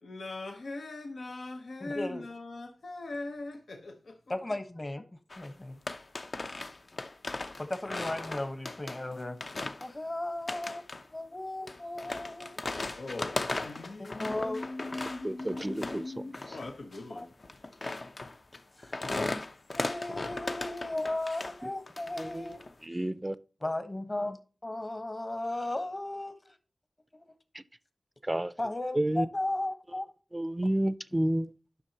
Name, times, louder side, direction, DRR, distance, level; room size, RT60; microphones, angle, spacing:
voice 1, 0.0-4.2 12.9-17.3, left 2 dB, 90° left, 1.0 m, -40 dB
voice 2, 1.8-2.2 4.3-5.0 5.4-5.8 7.6-9.4 9.8-10.8 11.1-12.6 14.0-14.7 17.1-17.3 18.8-19.4 19.7-22.6 23.6-24.4 24.6-26.3 27.1-27.3 28.6-30.1, left 1 dB, 30° left, 1.1 m, -35 dB
sound 1, 5.3-5.5 5.9-9.1 9.4-9.9 10.5-11.1 11.7-16.1 16.3-21.6 21.9-22.7, left 2 dB, 55° left, 0.7 m, -38 dB
voice 3, 15.2-16.6 22.2-22.6 22.8-23.4 27.5-27.6 28.2-28.5 28.9-29.3 30.3-31.5, right 1 dB, 20° right, 0.5 m, -31 dB
11.0 x 6.1 x 2.9 m
wide cardioid pair, 80°, 0 cm